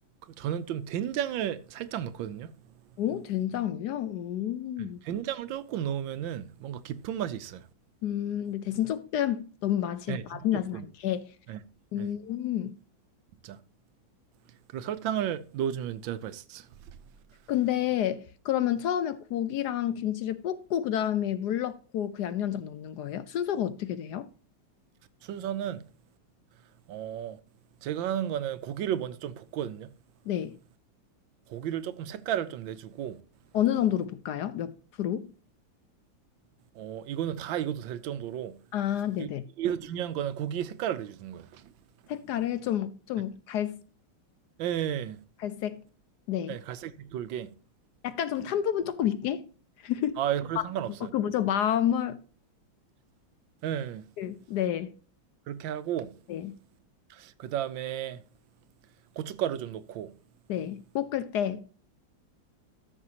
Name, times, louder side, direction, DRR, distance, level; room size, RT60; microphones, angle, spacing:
voice 1, 0.2-2.5 4.8-7.7 10.1-10.8 11.5-11.6 12.0-12.1 13.4-13.6 14.7-16.7 25.2-25.9 26.9-27.4 27.8-29.9 31.5-33.2 36.7-38.6 39.2-39.3 39.6-41.7 44.6-45.2 46.5-47.5 50.2-51.1 53.6-54.1 55.5-56.1 57.1-58.2 59.2-60.1, right 10 dB, 85° right, 1.4 m, -33 dB
voice 2, 3.0-5.0 8.0-11.3 11.9-12.8 17.5-24.3 30.3-30.6 33.5-35.3 38.7-39.4 42.1-43.8 45.4-45.8 46.3-46.6 48.0-49.5 49.8-50.2 51.1-52.2 54.2-54.9 56.3-56.6 60.5-61.7, left 11 dB, 70° left, 1.0 m, -29 dB
13.5 x 6.8 x 2.8 m
omnidirectional pair, 2.1 m